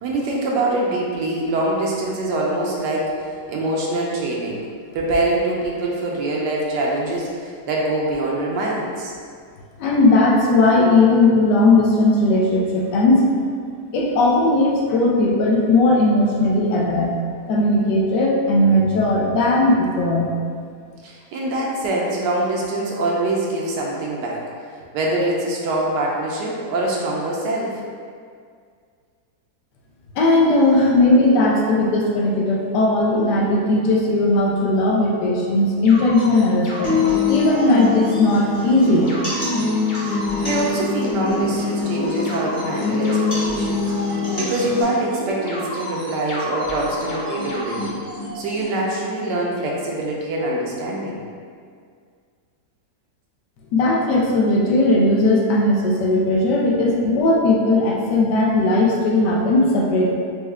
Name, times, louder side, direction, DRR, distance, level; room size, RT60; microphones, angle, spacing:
voice 1, 0.0-3.2 3.5-4.6 4.9-9.1 21.0-24.4 24.9-27.8 40.2-43.9 44.4-48.0 48.3-51.2, right 2 dB, 80° right, -3 dB, 1.2 m, -24 dB
voice 2, 9.8-13.3 13.9-17.1 17.5-20.3 30.2-36.9 37.3-39.2 53.7-60.0, left 2 dB, 80° left, -2 dB, 1.2 m, -17 dB
sound 1, 35.8-48.6, left 1 dB, 65° left, 0.4 m, -31 dB
sound 2, 36.8-44.8, left 4 dB, 30° left, 0.8 m, -24 dB
4.4 x 2.1 x 3.5 m, 2.1 s
omnidirectional pair, 1.9 m